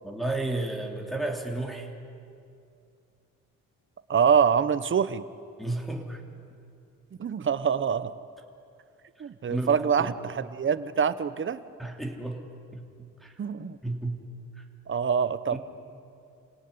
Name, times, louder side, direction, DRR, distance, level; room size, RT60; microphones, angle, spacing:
voice 1, 0.0-1.9 5.6-6.2 9.5-10.1 11.8-12.5 12.7-13.3 13.8-14.3 15.5-15.6, right 2 dB, ahead, 0 dB, 3.4 m, -32 dB
voice 2, 4.1-5.2 7.2-8.1 9.2-11.6 13.4-13.8 14.9-15.6, right 7 dB, 40° right, 13 dB, 1.2 m, -25 dB
29.5 x 17.5 x 9.8 m, 2.5 s
cardioid pair, 90°, 30 cm